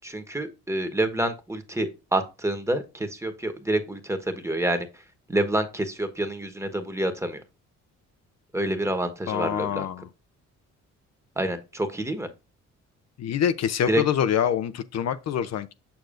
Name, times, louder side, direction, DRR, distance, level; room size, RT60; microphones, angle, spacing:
voice 1, 0.0-4.9 5.3-7.4 8.5-9.9 11.4-12.3 13.9-14.0, right 1 dB, 10° right, 1.2 m, -27 dB
voice 2, 9.3-10.1 13.2-15.7, left 9 dB, 60° left, 0.6 m, -25 dB
7.0 x 6.2 x 2.5 m
cardioid pair, 90°, 30 cm